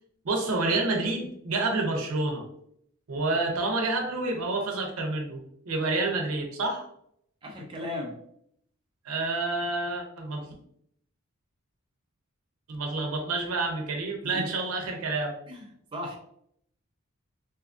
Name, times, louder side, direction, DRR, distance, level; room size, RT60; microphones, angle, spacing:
voice 1, 0.2-2.4 3.1-5.4 5.7-6.8 9.1-10.5 12.7-15.3, right 2 dB, 85° right, 2 dB, 0.6 m, -28 dB
voice 2, 7.4-8.2 14.2-14.5 15.5-15.7 15.9-16.2, left 1 dB, 25° right, -1 dB, 0.4 m, -35 dB
2.6 x 2.3 x 2.4 m, 0.70 s
head